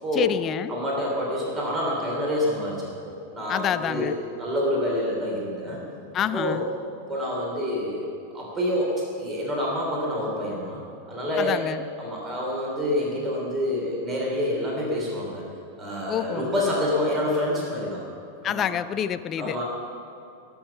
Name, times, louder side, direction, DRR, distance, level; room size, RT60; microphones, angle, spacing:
voice 1, 0.1-0.8 3.5-4.2 6.1-6.6 11.4-11.8 16.1-16.5 18.4-19.6, left 9 dB, 30° left, 13 dB, 0.4 m, -27 dB
voice 2, 0.7-4.1 4.4-5.8 6.3-6.6 7.0-10.8 11.1-11.6 12.0-15.4 15.8-18.0 18.4-18.7 19.4-19.6, left 1 dB, 20° right, -2 dB, 3.3 m, -27 dB
21.0 x 7.0 x 7.0 m, 2.7 s
figure-of-eight pair, 90°, 0 cm